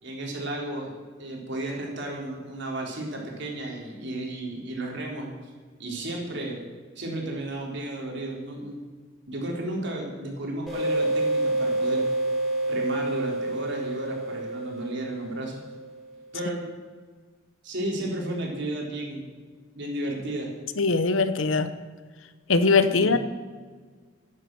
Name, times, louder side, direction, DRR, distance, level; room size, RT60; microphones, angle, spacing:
voice 1, 0.0-5.3 5.8-6.6 7.0-8.8 9.3-12.0 12.7-15.6 16.3-16.6 17.6-19.2 19.8-20.5 22.9-23.1, right 1 dB, 65° right, -1 dB, 3.8 m, -33 dB
sound 1, 10.7-16.0, right 1 dB, ahead, 4.9 m, -28 dB
voice 2, 20.8-21.7 22.5-23.2, left 4 dB, 80° left, 12 dB, 0.9 m, -21 dB
11.0 x 11.0 x 7.8 m, 1.5 s
head